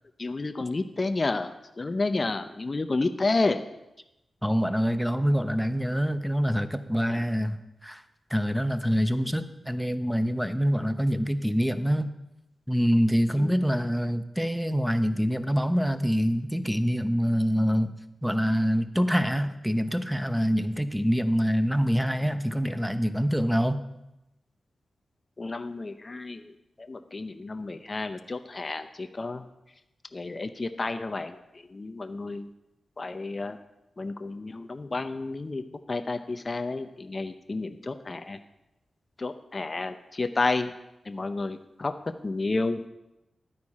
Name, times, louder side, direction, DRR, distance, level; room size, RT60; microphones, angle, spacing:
voice 1, 0.2-3.6 7.1-7.2 13.3-13.5 25.4-29.4 30.1-32.5 33.0-33.6 34.0-38.4 39.2-40.7 41.0-41.9 42.2-42.9, left 3 dB, 40° left, 8 dB, 0.7 m, -31 dB
voice 2, 4.4-8.0 8.3-12.1 12.7-17.9 18.2-23.8, equal, ahead, 10 dB, 0.8 m, -25 dB
12.5 x 9.6 x 4.2 m, 0.91 s
cardioid pair, 70°, 0 cm